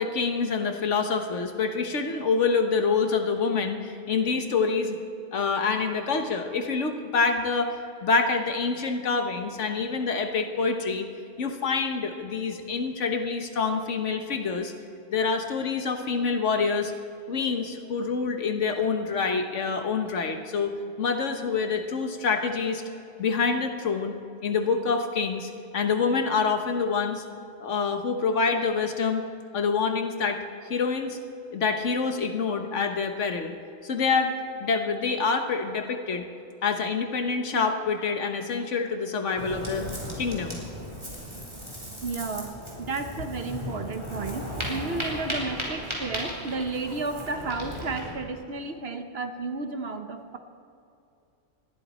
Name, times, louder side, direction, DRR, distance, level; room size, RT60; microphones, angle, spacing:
voice 1, 0.0-5.0 5.3-11.1 11.4-14.7 15.1-16.9 17.3-20.7 21.0-22.8 23.2-24.1 24.4-27.2 27.6-29.3 29.5-30.4 30.7-31.2 31.5-33.5 33.8-34.3 34.6-36.3 36.6-39.9 40.2-40.6, left 5 dB, 85° left, 6 dB, 1.5 m, -26 dB
Ocean, 39.4-48.1, equal, 25° right, 3.8 m, -36 dB
voice 2, 42.0-50.4, right 3 dB, 60° right, 7 dB, 1.2 m, -32 dB
20.0 x 14.0 x 4.3 m, 2.6 s
omnidirectional pair, 1.2 m